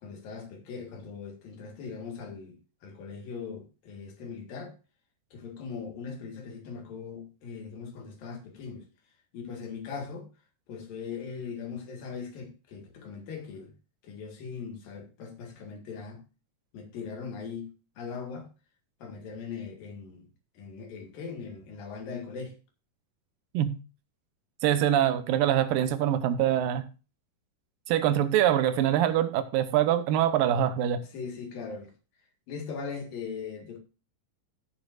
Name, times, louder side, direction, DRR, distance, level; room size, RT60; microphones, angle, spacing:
voice 1, 0.0-4.7 5.3-8.9 9.3-10.3 10.7-13.7 14.0-16.2 16.7-18.5 19.0-20.3 20.6-22.5 31.1-31.9 32.5-33.8, left 5 dB, 85° left, 3.7 m, -40 dB
voice 2, 24.6-26.8 27.9-31.0, right 11 dB, 90° right, 2.6 m, -24 dB
15.5 x 7.5 x 2.5 m
omnidirectional pair, 3.9 m